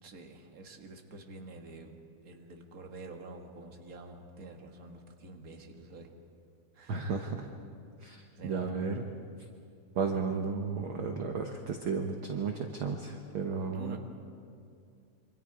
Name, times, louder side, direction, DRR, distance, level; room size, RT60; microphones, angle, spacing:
voice 1, 0.0-1.9 2.2-6.1 6.7-7.1 8.3-8.8 13.7-14.0, right 3 dB, 35° right, 3 dB, 1.7 m, -48 dB
voice 2, 6.9-7.5 8.0-9.0 9.9-14.0, right 5 dB, 60° right, 3 dB, 1.4 m, -33 dB
27.0 x 25.5 x 4.9 m, 2.4 s
omnidirectional pair, 3.6 m